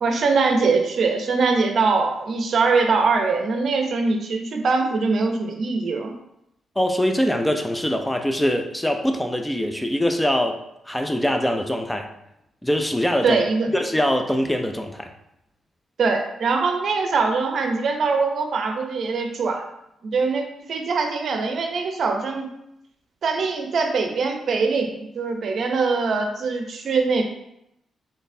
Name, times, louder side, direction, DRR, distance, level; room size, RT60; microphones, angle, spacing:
voice 1, 0.0-6.1 13.2-13.7 16.0-19.6 20.0-22.5 23.2-27.2, right 4 dB, 60° right, 4 dB, 0.6 m, -22 dB
voice 2, 6.8-10.6 10.9-12.1 12.6-13.4 13.7-15.1, equal, 10° left, 4 dB, 0.4 m, -23 dB
3.9 x 3.2 x 2.7 m, 0.81 s
cardioid pair, 90°, 0 cm